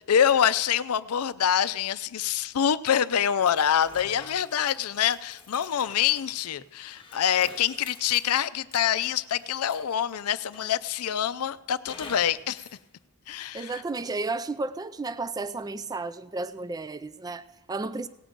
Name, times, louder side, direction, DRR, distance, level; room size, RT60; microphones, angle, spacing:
voice 1, 0.1-12.7 13.3-13.7, left 9 dB, 75° left, 0.5 m, -25 dB
sound 1, 3.4-10.1 10.5-11.1 11.9-12.8, left 4 dB, 25° left, 1.5 m, -48 dB
voice 2, 13.5-18.1, right 3 dB, 15° right, 0.3 m, -33 dB
18.0 x 7.7 x 5.1 m
head